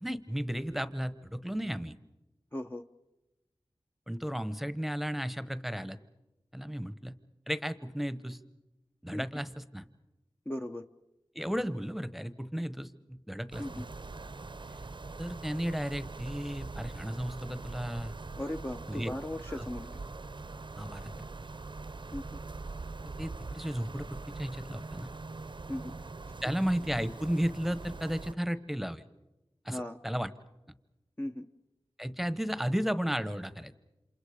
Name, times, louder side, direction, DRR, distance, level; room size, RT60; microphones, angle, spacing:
voice 1, 0.0-1.9 4.1-6.0 6.5-7.1 7.5-8.4 9.0-9.8 11.3-13.9 14.7-14.8 15.2-18.1 18.9-19.1 20.8-21.1 23.2-25.1 26.4-29.0 29.6-30.3 32.0-33.7, equal, ahead, 13 dB, 1.1 m, -34 dB
voice 2, 2.5-2.8 9.1-9.2 10.5-10.8 13.6-13.8 18.4-19.9 22.1-22.4 25.7-25.9 29.7-30.0 31.2-31.5, left 1 dB, 20° left, 4 dB, 0.8 m, -37 dB
sound 1, 13.5-28.3, right 3 dB, 55° right, 0.7 m, -43 dB
28.5 x 27.5 x 5.0 m, 0.97 s
wide cardioid pair, 45°, 10 cm